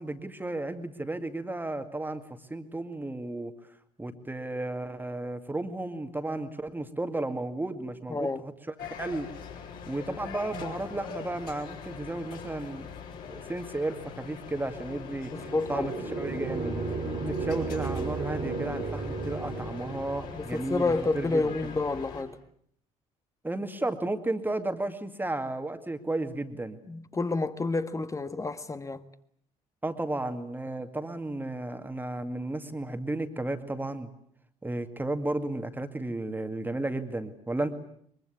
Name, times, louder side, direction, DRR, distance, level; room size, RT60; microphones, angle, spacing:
voice 1, 0.0-3.5 4.0-8.5 8.8-9.3 9.9-12.9 13.2-15.9 16.2-16.7 17.2-21.5 23.4-26.8 29.8-34.1 34.6-37.7, right 2 dB, 10° right, 2.2 m, -33 dB
voice 2, 8.1-8.5 15.3-16.0 20.3-22.4 26.9-29.0, left 3 dB, 15° left, 1.6 m, -29 dB
sound 1, 8.8-22.2, left 6 dB, 55° left, 5.6 m, -42 dB
sound 2, 15.3-20.2, right 3 dB, 30° right, 2.9 m, -34 dB
23.5 x 23.0 x 8.6 m
figure-of-eight pair, 55°, 18 cm